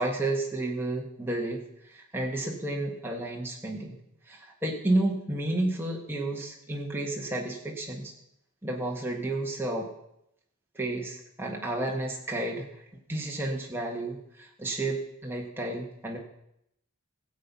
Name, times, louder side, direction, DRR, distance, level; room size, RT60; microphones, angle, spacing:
voice 1, 0.0-4.0 4.3-8.1 8.6-9.9 10.8-12.7 13.1-16.2, right 2 dB, 10° right, -1 dB, 1.7 m, -31 dB
16.5 x 7.9 x 5.6 m, 0.78 s
head